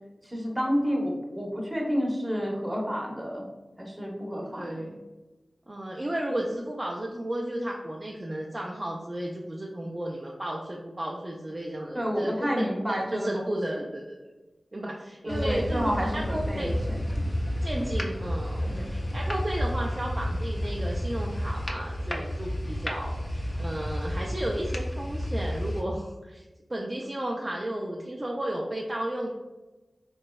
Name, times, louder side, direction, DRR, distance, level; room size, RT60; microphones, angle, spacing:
voice 1, 0.2-3.4 3.8-4.7 11.9-13.4 13.7-13.8 15.2-17.3 18.7-18.9, equal, 15° right, -1 dB, 0.8 m, -30 dB
voice 2, 4.3-5.0 5.7-14.2 14.7-16.8 17.6-26.4 26.7-29.3, right 1 dB, 30° right, -2 dB, 0.4 m, -33 dB
sound 1, 15.3-25.8, equal, 35° left, 0.5 m, -31 dB
3.6 x 3.1 x 2.2 m, 1.1 s
wide cardioid pair, 85°, 0 cm